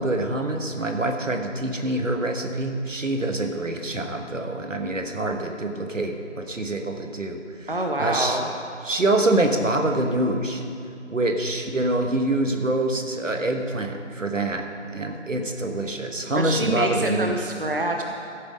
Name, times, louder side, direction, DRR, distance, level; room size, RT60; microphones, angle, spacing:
voice 1, 0.0-8.4 8.8-10.6 11.1-14.6 14.9-17.4, right 2 dB, 80° right, 5 dB, 1.4 m, -25 dB
voice 2, 7.7-8.5 16.4-18.0, right 1 dB, 45° right, 2 dB, 0.7 m, -26 dB
14.0 x 8.3 x 5.2 m, 2.6 s
figure-of-eight pair, 180°, 38 cm